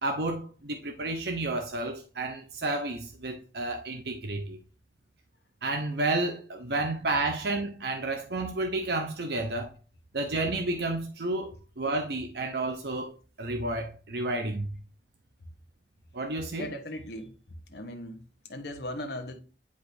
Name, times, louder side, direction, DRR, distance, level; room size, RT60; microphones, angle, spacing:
voice 1, 0.0-4.6 5.6-9.7 10.1-14.7 16.1-16.7, right 2 dB, 65° right, 0.8 m, -31 dB
voice 2, 16.6-17.3 17.7-18.2 18.5-19.3, left 1 dB, 65° left, 1.0 m, -37 dB
8.2 x 4.9 x 2.7 m
head